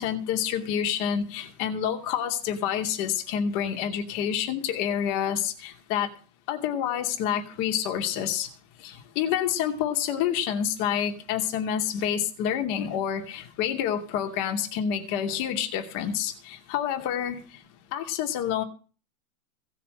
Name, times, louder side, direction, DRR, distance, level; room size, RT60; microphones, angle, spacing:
voice 1, 0.0-6.1 6.5-8.5 8.8-17.4 17.9-18.6, left 9 dB, 45° left, 5 dB, 2.7 m, -28 dB
16.0 x 6.7 x 7.8 m, 0.38 s
hypercardioid pair, 125°, 43 cm